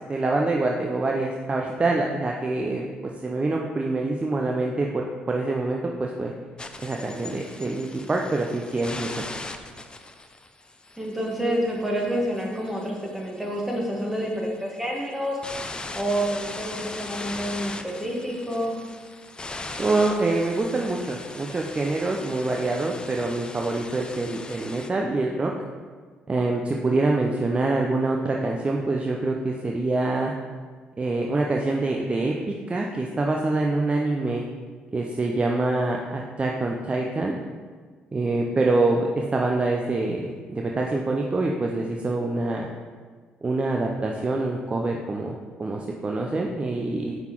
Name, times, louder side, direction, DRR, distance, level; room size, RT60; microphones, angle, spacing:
voice 1, 0.1-2.9 3.2-6.3 6.8-9.2 19.5-25.5 26.3-30.3 31.0-34.4 34.9-37.4 38.1-42.7 43.4-47.2, right 2 dB, 30° right, 0 dB, 0.5 m, -25 dB
sound 1, 6.6-24.9, left 2 dB, 20° left, 0.5 m, -40 dB
voice 2, 11.0-15.4 15.9-18.7, equal, 5° right, -1 dB, 1.4 m, -28 dB
5.5 x 3.9 x 4.6 m, 1.5 s
hypercardioid pair, 60°, 4 cm